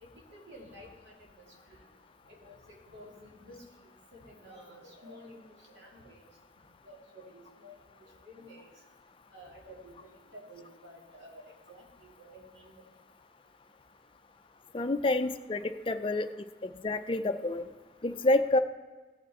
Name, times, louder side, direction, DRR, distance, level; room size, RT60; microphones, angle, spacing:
voice 1, 0.0-1.8 2.3-3.6 4.1-6.2 6.8-7.8 8.0-8.7 9.3-9.9 10.3-12.7, equal, 70° right, -2 dB, 2.5 m, -52 dB
voice 2, 14.7-16.3 16.6-17.6 18.0-18.6, left 2 dB, 25° left, 10 dB, 0.4 m, -28 dB
16.0 x 6.0 x 4.1 m, 1.3 s
head